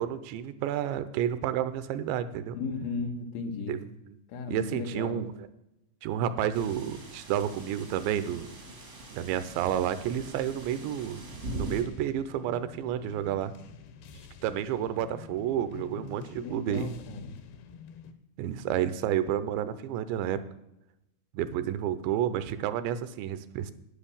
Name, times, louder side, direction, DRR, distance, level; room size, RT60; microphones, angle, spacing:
voice 1, 0.0-2.6 3.7-3.8 4.5-5.3 6.0-8.5 9.1-11.2 11.5-13.5 14.4-16.9 18.4-20.4 21.3-23.7, right 10 dB, 85° right, 12 dB, 2.9 m, -30 dB
voice 2, 2.5-3.8 4.3-5.2 15.7-17.3, left 4 dB, 90° left, 5 dB, 3.7 m, -36 dB
sound 1, 6.5-11.8, right 2 dB, 55° right, 0.7 m, -41 dB
sound 2, 11.7-18.1, left 7 dB, 75° left, 2.6 m, -49 dB
10.0 x 9.5 x 7.1 m, 0.89 s
omnidirectional pair, 5.2 m